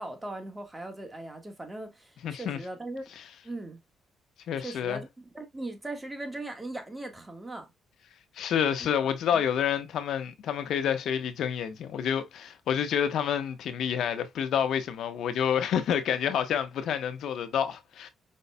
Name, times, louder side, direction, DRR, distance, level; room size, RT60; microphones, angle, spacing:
voice 1, 0.0-3.0 3.4-3.8 4.6-7.7 9.3-9.5, right 2 dB, 15° right, 1.5 m, -39 dB
voice 2, 2.2-2.6 4.5-5.0 8.3-18.1, left 8 dB, 70° left, 1.0 m, -28 dB
5.4 x 4.0 x 2.2 m
cardioid pair, 90°, 0 cm